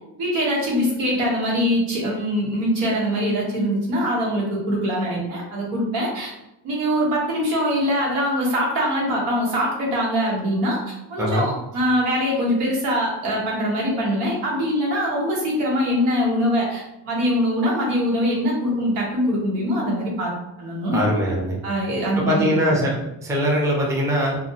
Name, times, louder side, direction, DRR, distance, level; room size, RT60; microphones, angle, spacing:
voice 1, 0.2-6.3 6.6-20.3 20.6-21.1 21.6-22.6, equal, 90° right, -3 dB, 1.1 m, -23 dB
voice 2, 20.9-21.6 22.1-23.0 23.2-24.4, equal, 5° right, -3 dB, 0.4 m, -21 dB
2.5 x 2.1 x 2.7 m, 0.86 s
cardioid pair, 110°, 45 cm